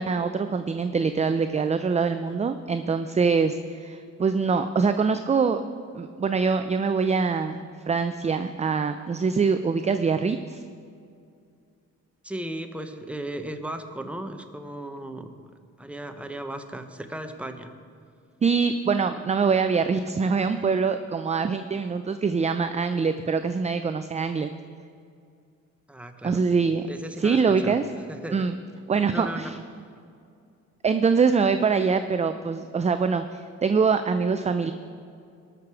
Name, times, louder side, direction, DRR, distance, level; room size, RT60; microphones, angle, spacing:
voice 1, 0.0-5.6 5.9-10.6 18.4-24.5 26.2-26.9 27.2-27.8 28.3-28.6 28.9-29.6 30.8-34.7, right 5 dB, 25° right, 9 dB, 0.5 m, -24 dB
voice 2, 12.2-15.3 15.8-17.7 25.9-26.4 26.9-27.8 28.1-28.4 29.1-29.5, right 1 dB, 5° right, 6 dB, 1.0 m, -35 dB
19.5 x 6.6 x 4.8 m, 2.4 s
cardioid pair, 90°, 30 cm